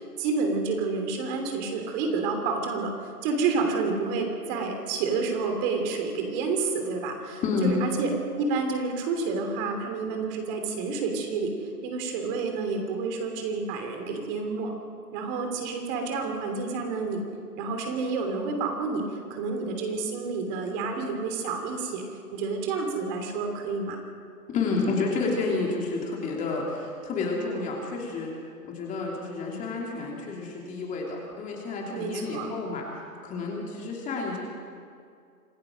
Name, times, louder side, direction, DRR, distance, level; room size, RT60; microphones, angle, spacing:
voice 1, 0.2-8.1 8.4-14.7 15.1-17.3 17.6-22.0 22.3-24.0 31.9-32.5, right 4 dB, 30° right, 4 dB, 3.0 m, -29 dB
voice 2, 7.4-7.8 24.5-28.3 28.6-32.9 33.2-34.4, left 3 dB, 15° left, -1 dB, 3.0 m, -30 dB
26.5 x 16.5 x 6.3 m, 2.3 s
hypercardioid pair, 135°, 46 cm